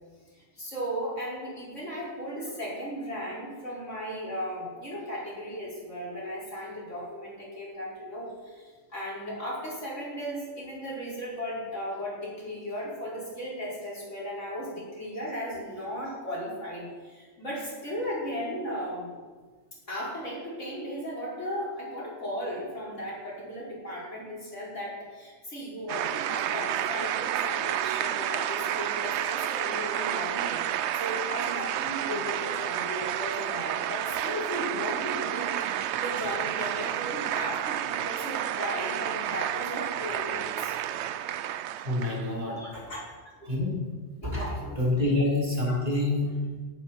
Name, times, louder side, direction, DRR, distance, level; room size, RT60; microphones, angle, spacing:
voice 1, 0.4-19.2 19.9-35.5 36.0-40.8 42.4-43.3 44.2-44.8 45.7-46.1, equal, 70° left, -5 dB, 5.7 m, -36 dB
sound 1, 25.9-42.4, right 11 dB, 70° right, 0.8 m, -30 dB
voice 2, 41.8-43.0 43.4-43.8 44.2-46.6, left 2 dB, 35° right, -4 dB, 4.0 m, -28 dB
17.0 x 13.0 x 4.5 m, 1.4 s
omnidirectional pair, 1.3 m